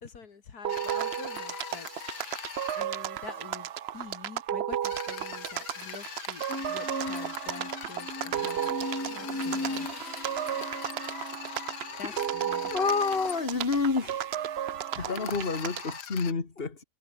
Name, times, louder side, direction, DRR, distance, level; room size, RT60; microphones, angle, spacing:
voice 1, 0.0-1.9 2.7-8.6 9.1-9.9 12.0-12.7 14.7-15.5, left 5 dB, 70° left, 2.4 m, -46 dB
sound 1, 0.6-16.0, right 10 dB, 60° right, 0.7 m, -34 dB
sound 2, 0.7-2.8 4.8-13.4 15.1-16.3, left 9 dB, 90° left, 1.8 m, -42 dB
sound 3, 6.5-13.9 14.5-15.0, left 2 dB, 10° left, 0.9 m, -39 dB
voice 2, 12.0-12.4 12.7-14.3 15.0-16.8, left 4 dB, 35° left, 2.2 m, -29 dB
omnidirectional pair, 1.7 m